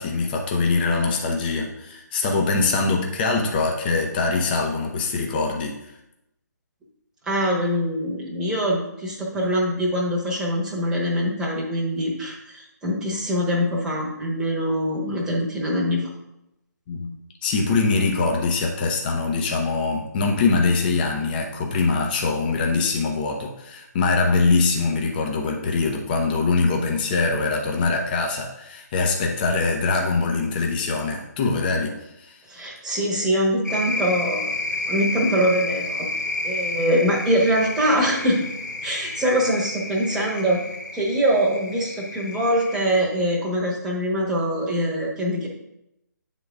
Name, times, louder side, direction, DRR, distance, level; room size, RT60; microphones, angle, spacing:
voice 1, 0.0-5.9 16.9-17.1 17.4-32.4, left 4 dB, 30° left, 1 dB, 0.7 m, -23 dB
voice 2, 7.3-16.0 32.5-34.5 34.9-36.1 36.4-38.4 38.8-40.6 40.9-45.5, equal, 5° right, -4 dB, 1.1 m, -23 dB
sound 1, 33.7-43.0, left 2 dB, 70° left, 1.0 m, -31 dB
8.6 x 3.8 x 3.5 m, 0.87 s
figure-of-eight pair, 140°, 10 cm